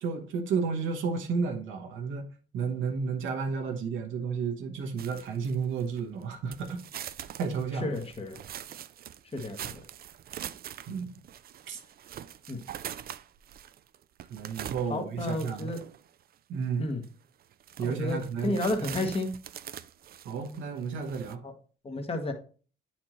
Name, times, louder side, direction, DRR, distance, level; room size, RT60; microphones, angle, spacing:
voice 1, 0.0-2.3 2.5-6.8 7.4-7.9 10.9-11.1 11.7-11.8 14.3-15.7 16.5-16.9 17.8-18.5 18.8-19.1 20.2-21.4, right 5 dB, 80° right, 1.0 m, -32 dB
sound 1, 5.0-6.2 6.5-16.1 16.6-16.7 17.0-17.1 17.5-21.3, right 10 dB, 50° right, 0.4 m, -43 dB
voice 2, 7.8-8.4 9.3-9.8 12.5-12.6 14.9-15.8 16.8-17.0 17.8-19.3 21.4-21.5 21.8-22.3, left 2 dB, 30° left, 1.1 m, -32 dB
8.6 x 4.3 x 3.0 m
cardioid pair, 90°, 20 cm